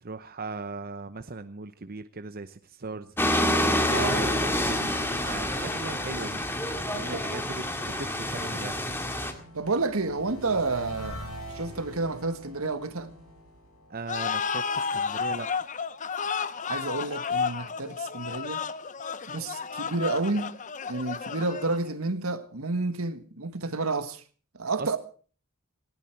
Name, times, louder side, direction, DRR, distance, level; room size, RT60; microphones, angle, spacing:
voice 1, 0.0-3.1 3.6-6.4 6.9-8.8 13.9-15.5 24.8-25.0, right 3 dB, 45° right, 0.8 m, -38 dB
sound 1, 3.2-9.3, left 1 dB, 10° left, 2.0 m, -27 dB
voice 2, 3.9-4.2 7.1-7.3 9.5-13.1 16.7-18.6 19.3-20.5 20.9-24.2 24.5-25.0, right 3 dB, 75° right, 1.7 m, -30 dB
sound 2, 7.9-14.8, equal, 85° left, 6.0 m, -44 dB
sound 3, 14.1-21.9, left 6 dB, 35° left, 0.8 m, -32 dB
19.0 x 16.0 x 4.6 m
head